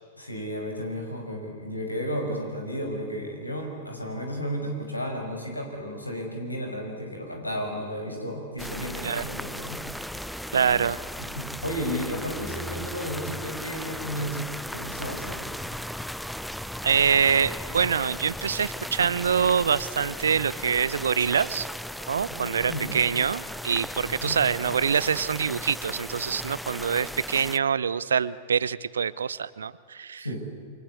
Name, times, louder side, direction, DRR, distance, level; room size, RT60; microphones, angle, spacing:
voice 1, 0.2-9.8 11.3-15.5 22.3-23.1 24.2-24.4 30.2-30.4, equal, 90° left, 2 dB, 5.8 m, -33 dB
sound 1, 8.6-27.6, equal, ahead, 0.7 m, -36 dB
voice 2, 10.5-11.0 16.8-21.7 22.1-30.2, right 7 dB, 70° right, 19 dB, 0.8 m, -25 dB
28.5 x 24.5 x 8.4 m, 2.1 s
figure-of-eight pair, 95°, 0 cm